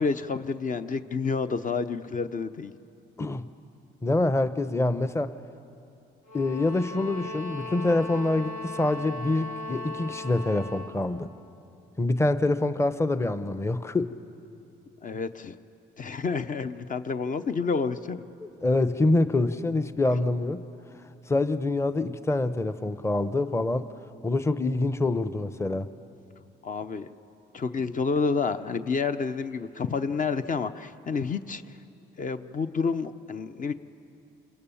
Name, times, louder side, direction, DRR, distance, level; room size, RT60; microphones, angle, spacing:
voice 1, 0.0-2.7 15.0-15.6 16.0-18.2 26.6-27.1 27.5-31.6 32.2-33.7, left 5 dB, 40° left, 10 dB, 0.8 m, -29 dB
voice 2, 4.0-5.3 6.3-11.3 12.0-14.1 18.4-20.6 21.3-23.9 24.2-25.9, left 2 dB, 15° left, 11 dB, 0.8 m, -26 dB
sound 1, 6.2-11.0, left 2 dB, 80° left, 2.7 m, -38 dB
28.5 x 21.5 x 7.2 m, 2.7 s
cardioid pair, 90°, 20 cm